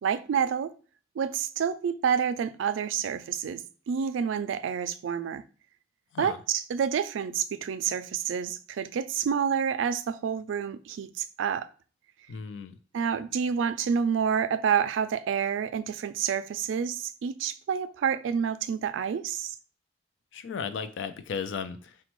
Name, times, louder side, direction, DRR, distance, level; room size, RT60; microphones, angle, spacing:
voice 1, 0.0-0.7 1.2-5.4 6.2-11.7 12.9-19.5, right 7 dB, 85° right, 0.3 m, -28 dB
voice 2, 12.3-12.8 20.3-22.0, left 6 dB, 75° left, 0.4 m, -35 dB
5.0 x 2.2 x 3.0 m
head